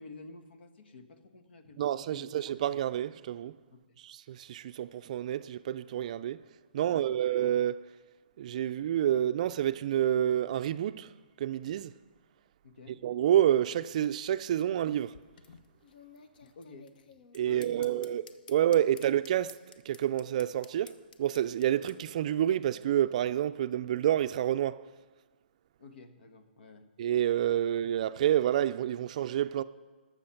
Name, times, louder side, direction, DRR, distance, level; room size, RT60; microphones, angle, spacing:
voice 1, 0.0-2.6 3.7-4.0 6.8-7.3 12.6-13.0 16.4-16.9 17.4-18.0 25.8-26.9, left 3 dB, 85° left, 1.4 m, -51 dB
voice 2, 1.8-3.6 4.0-6.4 6.7-7.8 8.4-11.1 11.4-11.9 13.0-15.1 17.3-18.2 18.5-19.5 19.9-24.8 27.0-29.6, right 11 dB, 45° right, 0.3 m, -28 dB
sound 1, 14.9-22.0, left 6 dB, 60° left, 0.9 m, -54 dB
19.5 x 6.9 x 5.8 m
hypercardioid pair, 160°, 6 cm